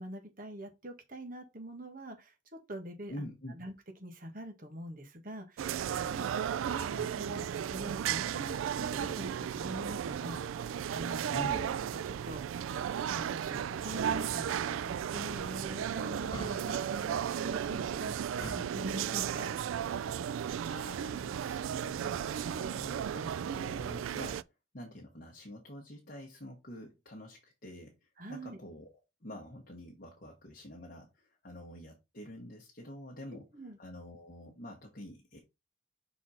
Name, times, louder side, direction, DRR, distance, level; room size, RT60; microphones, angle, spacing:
voice 1, 0.0-3.3 3.5-3.7 4.0-11.5 11.9-12.4 13.1-19.6 28.2-28.6 33.3-33.8, equal, 45° right, 1.6 m, -44 dB
voice 2, 3.1-3.5 6.6-7.1 11.3-11.6 16.6-17.2 20.6-24.4 24.7-28.9 29.2-33.5 33.8-35.4, left 1 dB, 45° left, 1.2 m, -47 dB
sound 1, 5.6-24.4, right 9 dB, 85° right, 0.3 m, -35 dB
sound 2, 8.9-9.5 11.4-12.1 14.0-14.5 16.3-17.1 18.2-18.9, left 1 dB, 20° left, 1.1 m, -47 dB
5.9 x 4.1 x 4.2 m
head